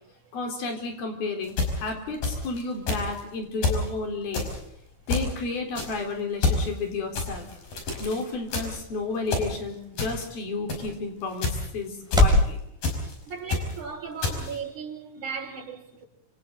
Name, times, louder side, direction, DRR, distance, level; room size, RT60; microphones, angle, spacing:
voice 1, 0.3-4.5 5.1-7.5 8.0-12.6, left 3 dB, 85° left, 5.9 m, -32 dB
sound 1, 1.4-2.6 2.9-3.2 3.6-3.9 4.3-4.6 5.1-5.4 5.7-6.0 6.4-6.7 7.2-8.2 8.5-8.8 9.3-9.6 10.0-10.3 10.7-10.9 11.4-11.7 12.1-12.4 12.8-13.1 13.5-13.8 14.2-14.6, left 3 dB, 65° left, 6.9 m, -28 dB
sound 2, 6.3-12.5, left 1 dB, ahead, 6.2 m, -29 dB
voice 2, 13.3-16.1, right 6 dB, 55° right, 6.4 m, -36 dB
29.5 x 27.5 x 3.9 m
omnidirectional pair, 4.2 m